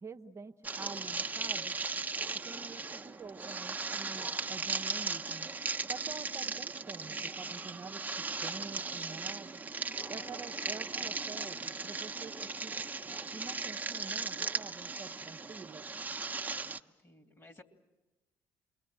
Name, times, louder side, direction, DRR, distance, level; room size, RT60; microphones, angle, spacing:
voice 1, 0.0-1.8 2.4-5.5 5.9-9.6 10.1-12.8 13.3-15.9, right 4 dB, 35° right, 5 dB, 0.9 m, -47 dB
sound 1, 0.6-16.8, right 4 dB, 20° right, 1.1 m, -37 dB
sound 2, 8.6-13.6, left 2 dB, 75° left, 6.1 m, -62 dB
voice 2, 16.5-17.6, left 2 dB, 35° left, 6 dB, 2.8 m, -58 dB
28.5 x 22.0 x 7.7 m, 1.1 s
supercardioid pair, 80°, 8 cm